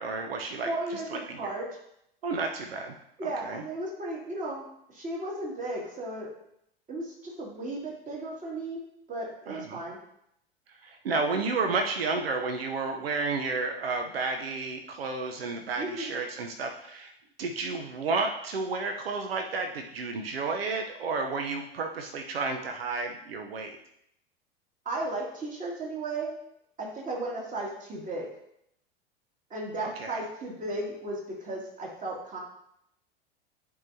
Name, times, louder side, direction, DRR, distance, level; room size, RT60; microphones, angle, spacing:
voice 1, 0.0-1.5 2.2-2.9 3.2-3.6 9.5-9.8 10.8-17.1 17.4-23.8 29.8-30.2, right 3 dB, 75° right, 4 dB, 0.8 m, -32 dB
voice 2, 0.6-1.7 3.2-6.3 6.9-8.8 9.1-10.0 15.8-16.1 24.9-26.3 26.8-28.3 29.5-32.4, right 2 dB, 25° right, -3 dB, 2.4 m, -35 dB
10.5 x 4.8 x 2.7 m, 0.74 s
figure-of-eight pair, 85°, 30 cm